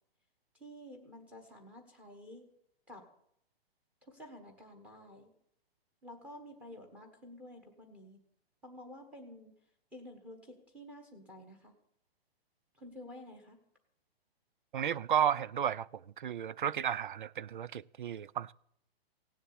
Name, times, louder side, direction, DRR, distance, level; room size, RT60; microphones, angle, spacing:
voice 1, 0.6-2.5 2.9-3.0 4.1-5.3 6.0-8.2 8.6-9.5 9.9-11.7 12.8-13.6, left 1 dB, 5° right, 1.2 m, -51 dB
voice 2, 14.7-15.9 16.2-18.5, right 9 dB, 55° right, 0.4 m, -33 dB
17.0 x 7.3 x 8.7 m
hypercardioid pair, 180°, 31 cm